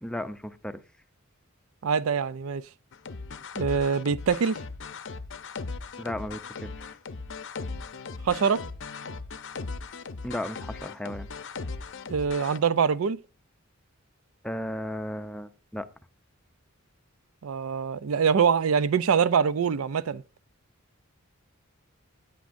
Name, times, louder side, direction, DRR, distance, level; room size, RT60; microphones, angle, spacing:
voice 1, 0.0-0.8 6.0-6.7 10.2-11.3 14.4-15.9, left 1 dB, 5° left, 0.5 m, -35 dB
voice 2, 1.8-2.6 3.6-4.6 8.2-8.6 12.1-13.2 17.4-20.2, right 6 dB, 70° right, 0.4 m, -24 dB
sound 1, 2.9-12.6, left 4 dB, 60° left, 0.7 m, -38 dB
16.5 x 8.4 x 2.6 m
head